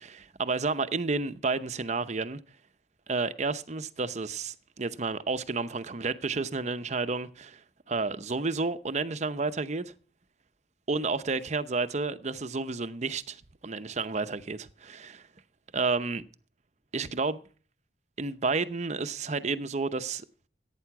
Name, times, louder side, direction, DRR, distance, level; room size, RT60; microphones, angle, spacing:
voice 1, 0.0-2.4 3.1-7.6 7.9-9.9 10.9-15.3 15.7-16.3 16.9-17.4 18.2-20.2, right 3 dB, 40° right, 0.7 m, -31 dB
16.0 x 9.1 x 6.0 m
head